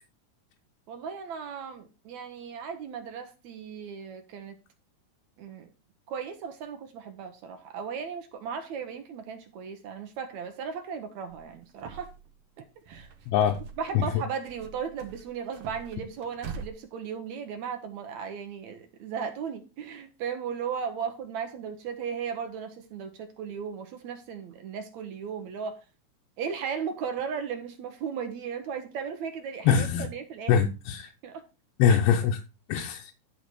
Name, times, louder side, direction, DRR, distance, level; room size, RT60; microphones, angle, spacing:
voice 1, 0.9-4.6 5.4-5.7 6.1-12.1 12.9-13.1 13.8-25.8 26.4-30.6 31.2-31.4 31.9-32.0, right 7 dB, 80° right, 1.6 m, -36 dB
sound 1, 11.3-12.3 12.7-14.1 14.4-16.7, right 6 dB, 60° right, 1.6 m, -44 dB
voice 2, 13.3-13.6 14.0-14.1 29.7-30.1 30.5-31.1 31.8-32.4 32.7-33.1, left 7 dB, 85° left, 2.8 m, -23 dB
11.5 x 4.1 x 6.0 m
omnidirectional pair, 4.4 m